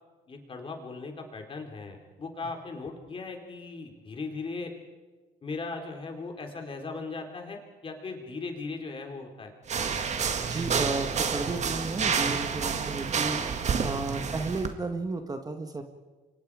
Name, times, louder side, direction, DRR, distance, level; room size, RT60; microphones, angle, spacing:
voice 1, 0.3-4.7 5.4-9.5, left 3 dB, 30° left, 3 dB, 4.1 m, -38 dB
sound 1, 9.7-14.7, right 6 dB, 45° right, 2.0 m, -29 dB
voice 2, 10.5-15.8, right 3 dB, 20° right, 6 dB, 1.7 m, -33 dB
29.0 x 24.5 x 5.0 m, 1.3 s
cardioid pair, 110°, 17 cm